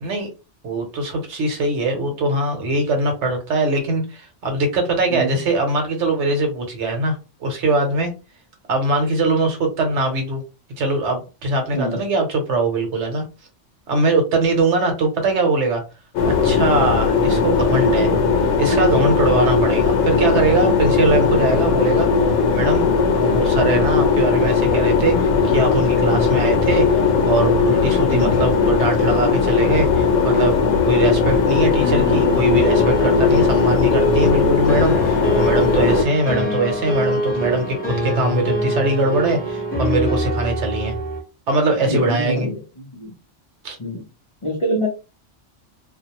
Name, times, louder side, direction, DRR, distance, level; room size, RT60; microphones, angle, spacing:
voice 1, 0.6-8.1 8.7-10.4 10.8-13.2 13.9-15.8 16.2-18.1 18.6-22.1 22.5-22.9 23.2-30.6 30.9-40.9 41.5-42.5 43.6-43.8, right 2 dB, 70° right, 4 dB, 1.1 m, -21 dB
sound 1, 16.2-36.0, left 5 dB, 85° left, 1.0 m, -18 dB
sound 2, 31.1-41.2, equal, 10° left, 0.7 m, -24 dB
voice 2, 36.3-36.7 41.8-43.1 43.8-44.0 44.4-44.9, equal, 35° left, -4 dB, 0.5 m, -26 dB
2.5 x 2.0 x 2.8 m, 0.30 s
omnidirectional pair, 1.3 m